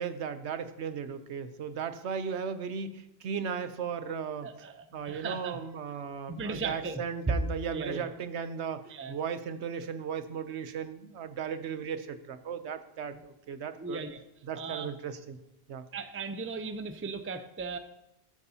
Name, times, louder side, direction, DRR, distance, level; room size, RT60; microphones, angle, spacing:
voice 1, 0.0-4.5 4.9-14.0 14.5-15.4 15.7-15.8, right 6 dB, 80° right, 10 dB, 1.0 m, -36 dB
voice 2, 4.4-5.6 6.3-7.4 7.7-8.1 8.9-9.1 13.1-13.2 13.8-14.2 14.5-14.9 15.9-17.8, right 4 dB, 15° right, 9 dB, 0.4 m, -36 dB
13.0 x 12.5 x 2.8 m, 0.84 s
omnidirectional pair, 1.1 m